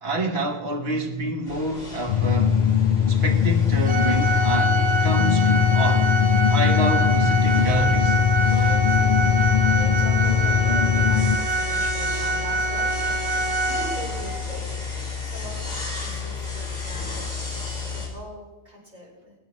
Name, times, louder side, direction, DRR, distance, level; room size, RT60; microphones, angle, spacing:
voice 1, 0.0-2.6 3.1-6.1 6.5-8.2, right 2 dB, 80° right, 1.6 m, -28 dB
sound 1, 1.5-18.1, left 4 dB, 70° left, 3.5 m, -33 dB
sound 2, 2.1-11.4, left 8 dB, 55° left, 0.7 m, -20 dB
Organ, 3.9-14.4, right 2 dB, 10° right, 1.0 m, -25 dB
voice 2, 8.5-17.2 17.5-17.6 17.9-19.3, equal, 45° right, 5.3 m, -41 dB
23.0 x 9.7 x 3.1 m
omnidirectional pair, 1.0 m